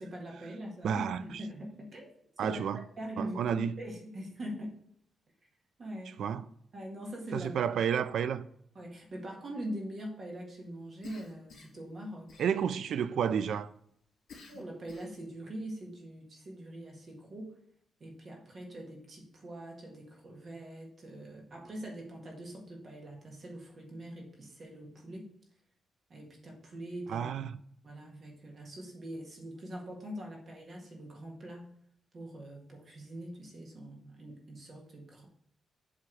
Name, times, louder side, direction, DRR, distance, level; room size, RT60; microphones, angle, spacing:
voice 1, 0.0-2.2 2.4-4.7 5.8-6.2 6.7-7.5 8.7-12.3 14.5-17.5 18.0-25.3 26.1-27.3 27.8-31.7 32.1-35.3, right 1 dB, 40° right, 1.7 m, -43 dB
voice 2, 0.8-1.2 2.4-2.8 3.2-3.7 6.2-6.5 7.3-8.5 12.4-13.7 27.1-27.5, right 8 dB, 75° right, 0.4 m, -30 dB
Cough, 11.0-11.9 12.3-12.9 14.3-15.3, left 5 dB, 65° left, 2.4 m, -52 dB
7.8 x 3.5 x 6.1 m
cardioid pair, 130°, 0 cm